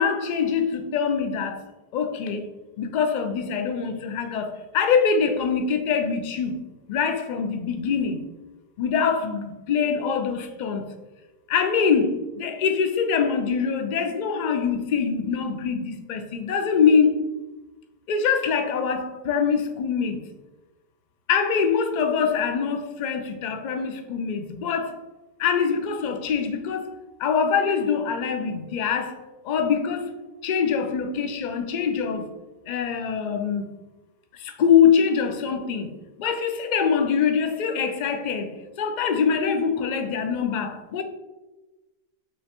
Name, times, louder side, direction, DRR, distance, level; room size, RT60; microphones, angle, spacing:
voice 1, 0.0-1.6 1.9-2.5 2.8-6.6 6.9-8.2 8.8-10.9 11.5-17.1 18.1-20.2 21.3-25.0 25.4-26.9 27.2-29.2 29.4-30.1 30.4-32.3 32.7-33.7 34.4-35.9 36.2-41.0, left 6 dB, 55° left, 7 dB, 0.6 m, -24 dB
5.5 x 3.1 x 2.9 m, 1.1 s
omnidirectional pair, 1.1 m